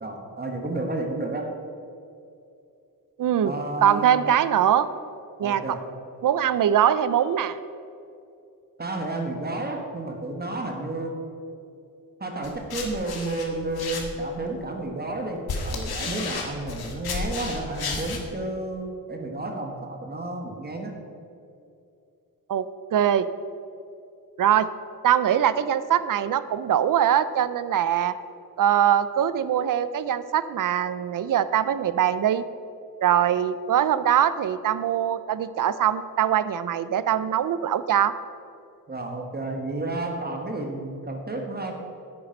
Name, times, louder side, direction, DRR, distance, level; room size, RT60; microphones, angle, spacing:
voice 1, 0.0-1.5 3.4-4.2 5.4-5.8 8.8-11.2 12.2-20.9 38.9-41.7, right 2 dB, 25° right, 2 dB, 1.2 m, -31 dB
voice 2, 3.2-3.5 3.8-4.9 5.4-5.6 6.2-7.6 22.5-22.6 22.9-23.3 24.4-24.7 25.0-28.1 28.6-32.4 33.0-38.1, right 10 dB, 60° right, 14 dB, 0.6 m, -22 dB
sound 1, 12.4-14.4 15.1-18.2, left 4 dB, 90° left, 1.7 m, -32 dB
10.0 x 8.8 x 5.2 m, 2.6 s
wide cardioid pair, 140°, 37 cm